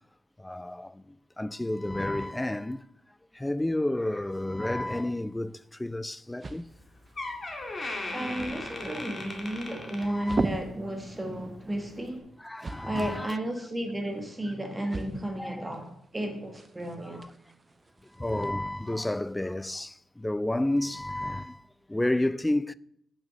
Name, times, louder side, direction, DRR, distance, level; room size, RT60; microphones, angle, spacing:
voice 1, 0.4-2.8 3.3-6.7 10.0-10.5 12.4-13.4 15.4-15.7 17.0-17.3 18.1-22.7, left 1 dB, 10° left, 0.3 m, -31 dB
sound 1, 5.1-18.5, right 3 dB, 30° right, 0.6 m, -41 dB
Door, 6.7-6.8 7.1-10.6 11.0-11.3 12.0-12.1, left 2 dB, 30° left, 2.1 m, -38 dB
voice 2, 8.1-12.3 12.8-17.2, right 1 dB, 15° right, 1.5 m, -33 dB
8.2 x 6.2 x 7.7 m
cardioid pair, 105°, 0 cm